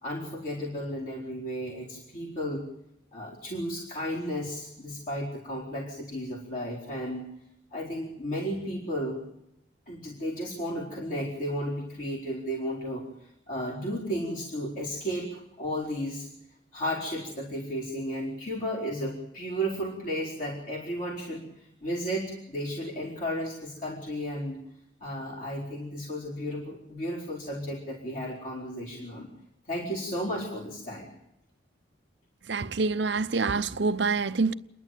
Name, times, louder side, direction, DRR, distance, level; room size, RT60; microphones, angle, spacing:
voice 1, 0.0-2.6 3.1-7.3 7.7-9.3 9.9-13.1 13.5-16.3 16.7-24.6 25.0-29.3 29.7-31.1, equal, 45° left, 4.4 m, -33 dB
voice 2, 32.5-34.5, right 4 dB, 70° right, 0.8 m, -26 dB
29.0 x 11.0 x 9.2 m
head